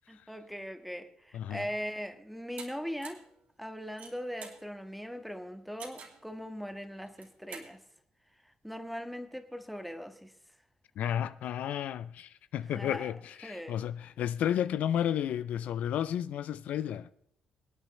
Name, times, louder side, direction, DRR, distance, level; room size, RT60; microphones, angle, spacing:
voice 1, 0.1-3.2 3.6-7.8 8.6-10.3 12.7-13.1 13.4-13.8, equal, ahead, 1.5 m, -40 dB
voice 2, 1.3-1.7 11.0-17.1, left 10 dB, 75° left, 0.4 m, -32 dB
sound 1, 2.6-2.7 3.0-3.3 3.8-4.6 5.8-6.2 7.1-7.7, right 5 dB, 70° right, 2.5 m, -46 dB
24.5 x 8.9 x 3.2 m
supercardioid pair, 65°, 3 cm